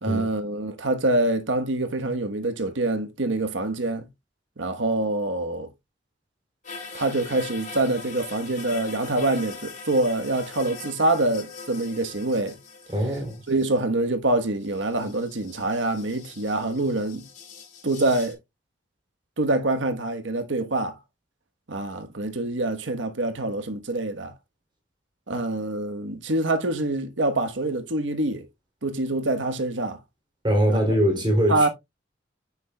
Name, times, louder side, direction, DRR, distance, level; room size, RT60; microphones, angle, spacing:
voice 1, 0.0-4.1 4.6-5.7 6.9-12.6 13.5-17.3 17.8-18.4 19.4-21.0 21.7-24.3 25.3-28.4 28.8-30.0 30.7-30.8 31.5-31.7, right 2 dB, 80° right, 1.2 m, -25 dB
sound 1, 6.6-13.8 14.6-18.3, left 4 dB, 45° left, 3.4 m, -42 dB
voice 2, 12.9-13.4 30.4-31.7, equal, 25° right, 3.1 m, -22 dB
9.7 x 7.2 x 2.3 m
head